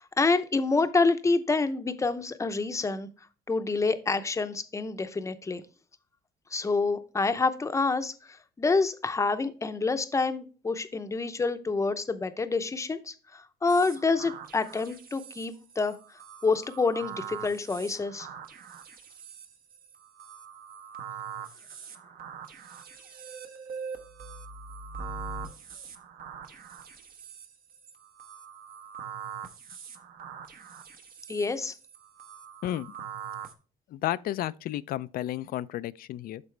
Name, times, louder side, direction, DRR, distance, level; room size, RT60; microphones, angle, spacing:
voice 1, 0.0-3.1 3.5-5.6 6.5-16.0 16.4-18.3 31.3-31.7, left 3 dB, 20° left, 0.7 m, -27 dB
sound 1, 13.7-33.5, right 6 dB, 60° right, 1.1 m, -43 dB
voice 2, 32.6-32.9 33.9-36.4, left 13 dB, 60° left, 0.4 m, -32 dB
11.5 x 4.1 x 3.3 m
cardioid pair, 110°, 17 cm